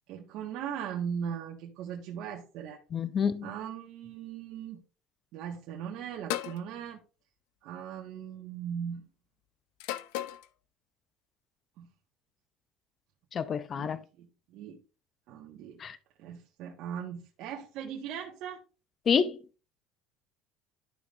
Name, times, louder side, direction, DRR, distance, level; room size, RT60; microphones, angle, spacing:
voice 1, 0.1-2.8 3.4-4.8 5.3-7.0 7.6-9.0 11.8-11.9 13.5-13.9 14.2-14.8 15.3-15.8 16.2-18.6, right 8 dB, 60° right, 1.5 m, -39 dB
voice 2, 2.9-3.5 13.3-14.0 15.8-16.0 19.1-19.4, left 6 dB, 30° left, 0.6 m, -28 dB
sound 1, 6.3-6.6 7.8-8.2 9.8-10.5, left 13 dB, 85° left, 0.5 m, -35 dB
12.0 x 5.2 x 2.5 m
cardioid pair, 135°, 0 cm